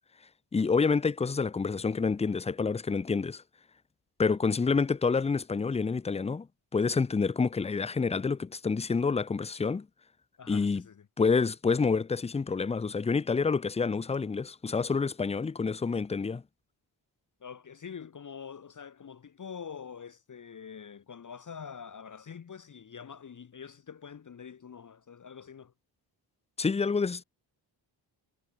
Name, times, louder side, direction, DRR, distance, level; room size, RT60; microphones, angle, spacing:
voice 1, 0.5-3.4 4.2-6.5 6.7-9.9 10.5-10.8 11.2-16.4 26.6-27.2, left 4 dB, 15° left, 0.4 m, -28 dB
voice 2, 10.4-11.1 17.4-25.7, left 7 dB, 40° left, 1.2 m, -45 dB
cardioid pair, 65°, 46 cm